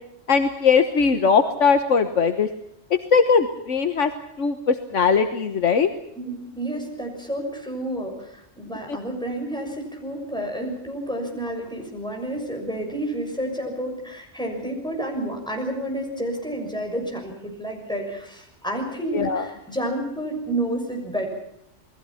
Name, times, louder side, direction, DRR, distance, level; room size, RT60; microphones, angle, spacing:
voice 1, 0.3-2.5 2.9-4.1 4.4-5.9 8.9-9.0 19.1-19.4, left 5 dB, 80° left, 7 dB, 1.6 m, -20 dB
voice 2, 6.2-21.3, right 1 dB, 5° left, 2 dB, 6.5 m, -30 dB
28.5 x 20.5 x 5.8 m, 0.77 s
omnidirectional pair, 1.3 m